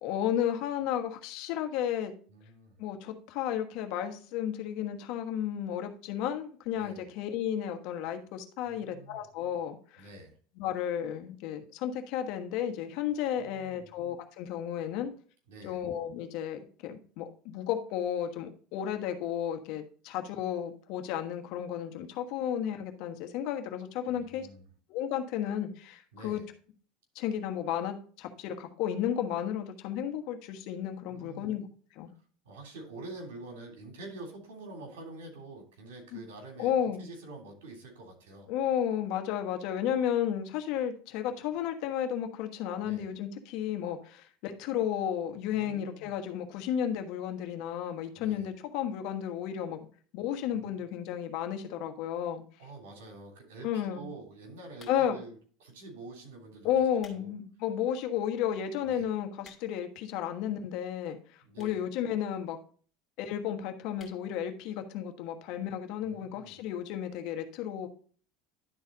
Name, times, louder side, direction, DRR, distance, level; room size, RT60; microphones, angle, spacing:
voice 1, 0.0-2.1 2.8-10.0 10.6-15.1 15.6-24.5 24.9-26.4 27.1-31.7 31.9-32.1 36.1-36.2 36.6-37.0 38.5-49.9 50.1-52.4 53.6-54.1 54.9-55.2 56.6-62.6 63.2-67.9, left 9 dB, 65° left, 6 dB, 1.3 m, -33 dB
voice 2, 2.3-2.8 6.7-7.1 8.6-9.2 10.0-10.4 13.4-13.9 15.5-15.8 24.1-24.7 26.1-26.5 31.1-31.5 32.1-38.5 42.8-43.1 45.5-46.2 48.2-48.5 50.5-50.9 52.6-56.7 57.1-57.3 58.8-59.1 61.4-61.8 66.0-66.6, right 2 dB, 80° right, 1 dB, 3.1 m, -47 dB
sound 1, 54.7-55.3 56.0-56.2 56.7-57.3 57.7-57.8 58.4-58.5 58.7-58.8 59.0-59.9 60.7-60.8 61.5-61.9 62.2-62.3 62.5-62.6 62.8-62.9 63.2-63.4 63.9-64.2 64.6-64.7 64.9-65.0, left 5 dB, 25° left, 2.3 m, -56 dB
11.0 x 4.1 x 4.0 m, 0.43 s
supercardioid pair, 105°, 0 cm